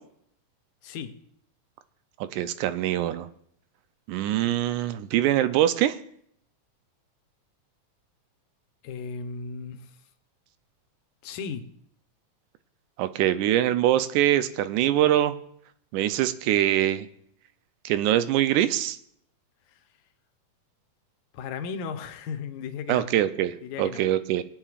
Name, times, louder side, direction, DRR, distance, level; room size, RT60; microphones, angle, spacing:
voice 1, 0.8-1.2 8.8-9.9 11.2-11.7 21.3-23.1 23.6-24.0, left 6 dB, 80° left, 7 dB, 2.3 m, -35 dB
voice 2, 2.3-3.3 4.1-6.0 13.0-15.3 15.9-17.1 17.9-19.0 22.9-24.4, right 12 dB, 85° right, 12 dB, 2.1 m, -23 dB
20.0 x 8.8 x 2.4 m, 0.68 s
omnidirectional pair, 3.5 m